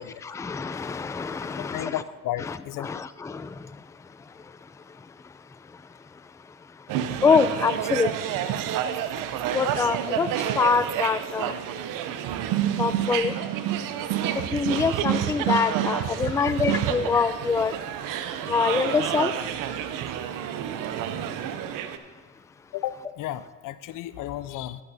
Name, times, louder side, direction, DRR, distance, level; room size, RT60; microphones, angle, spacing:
voice 1, 0.3-1.9 2.8-3.5 7.2-8.1 9.5-10.3 10.6-11.5 12.8-13.3 14.5-17.7 18.5-19.3, left 5 dB, 10° left, 0.3 m, -24 dB
voice 2, 1.6-3.0 15.9-16.7 18.5-18.7 20.8-21.0 22.7-24.8, left 13 dB, 80° left, 0.5 m, -34 dB
sound 1, 6.9-22.0, right 10 dB, 90° right, 0.6 m, -29 dB
11.5 x 11.0 x 2.7 m
cardioid pair, 70°, 31 cm